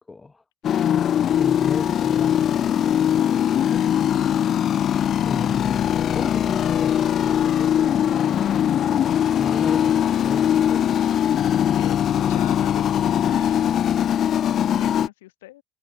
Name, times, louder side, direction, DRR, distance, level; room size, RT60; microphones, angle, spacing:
voice 1, 0.1-0.4 1.4-3.9 5.2-9.1 9.4-10.9, left 3 dB, 20° left, 4.2 m, -36 dB
sound 1, 0.6-15.1, left 10 dB, 50° left, 1.6 m, -21 dB
voice 2, 11.8-13.8 14.4-15.6, left 17 dB, 75° left, 3.3 m, -42 dB
hypercardioid pair, 60°, 0 cm